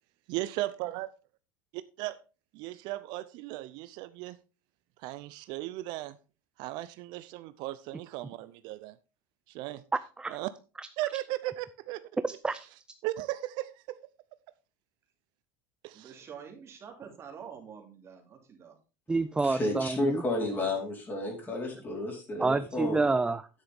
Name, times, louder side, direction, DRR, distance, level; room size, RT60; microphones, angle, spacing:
voice 1, 0.3-1.1 1.7-2.2 2.5-4.4 5.0-6.2 6.6-9.0 9.5-9.8 10.3-10.5 11.0-12.0 13.0-14.0 15.8-16.2, right 16 dB, 60° right, 0.6 m, -36 dB
voice 2, 12.2-12.7 19.1-20.2 22.4-23.5, right 3 dB, 10° right, 0.4 m, -28 dB
voice 3, 15.9-18.8, right 7 dB, 30° right, 2.7 m, -47 dB
voice 4, 19.4-23.1, left 2 dB, 25° left, 4.1 m, -32 dB
9.8 x 8.9 x 3.5 m
supercardioid pair, 125°, 9 cm